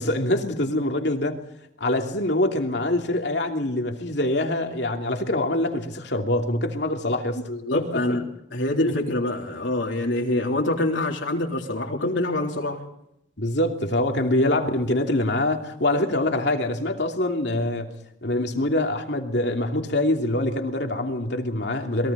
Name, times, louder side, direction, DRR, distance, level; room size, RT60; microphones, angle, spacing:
voice 1, 0.0-1.4 1.8-7.4 7.7-8.2 8.8-8.9 13.4-17.9 18.2-22.1, left 1 dB, 65° left, 2.8 m, -24 dB
voice 2, 7.5-8.2 8.5-12.8, left 1 dB, 85° left, 3.6 m, -25 dB
28.5 x 22.0 x 4.2 m
head